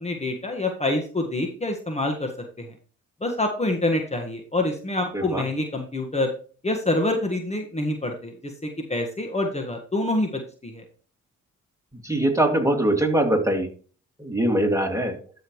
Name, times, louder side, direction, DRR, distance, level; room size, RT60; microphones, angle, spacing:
voice 1, 0.0-2.3 3.2-6.3 6.6-8.3 8.6-10.8, left 2 dB, 20° left, 3 dB, 1.6 m, -26 dB
voice 2, 5.1-5.4 12.0-13.7 14.2-15.1, right 1 dB, 10° right, 3 dB, 2.4 m, -22 dB
12.5 x 5.4 x 3.1 m, 0.40 s
supercardioid pair, 60°, 30 cm